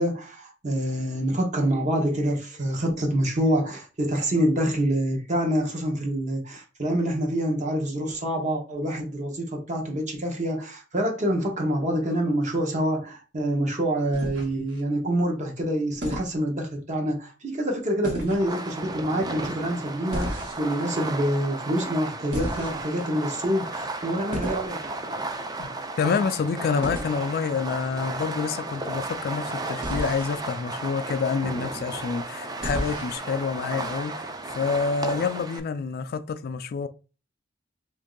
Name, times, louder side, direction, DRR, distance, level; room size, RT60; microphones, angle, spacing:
voice 1, 0.0-24.8, right 1 dB, 40° right, 0.9 m, -26 dB
sound 1, 14.1-14.8 16.0-16.4 18.0-18.5 20.1-20.8 22.3-23.0 24.3-24.7 26.8-27.1 29.8-30.3 32.6-33.2, equal, 70° right, 1.3 m, -33 dB
Fireworks, 18.3-35.6, right 2 dB, 20° right, 0.4 m, -34 dB
voice 2, 26.0-36.9, left 5 dB, 55° left, 0.3 m, -28 dB
2.9 x 2.6 x 3.8 m
head